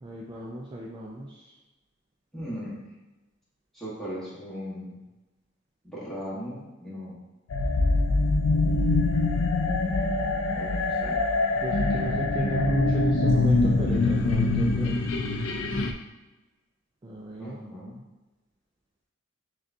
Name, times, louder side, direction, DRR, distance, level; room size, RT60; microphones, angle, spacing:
voice 1, 0.0-1.5 11.6-14.9 17.0-17.6, right 1 dB, 25° right, -3 dB, 0.3 m, -35 dB
voice 2, 2.3-2.8 3.7-5.0 5.8-7.2 8.5-8.9 10.5-11.2 17.4-18.0, equal, ahead, -9 dB, 1.2 m, -38 dB
sound 1, 7.5-15.9, left 2 dB, 70° left, 0.4 m, -24 dB
6.2 x 2.3 x 2.6 m, 1.1 s
head